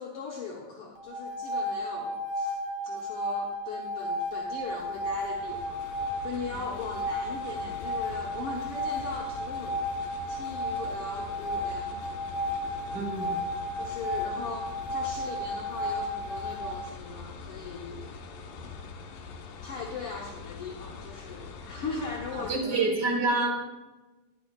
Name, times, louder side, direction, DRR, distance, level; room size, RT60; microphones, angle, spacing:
voice 1, 0.0-5.8 6.2-9.8 10.3-12.0 13.7-18.1 19.6-22.8 23.4-23.6, left 4 dB, 65° left, -1 dB, 1.4 m, -39 dB
sound 1, 1.0-16.8, equal, 65° right, 1.6 m, -33 dB
sound 2, 4.3-22.6, left 5 dB, 90° left, 2.8 m, -44 dB
voice 2, 12.9-13.4 22.3-23.6, right 3 dB, 50° right, -3 dB, 3.0 m, -27 dB
12.5 x 11.0 x 2.4 m, 1.2 s
omnidirectional pair, 3.7 m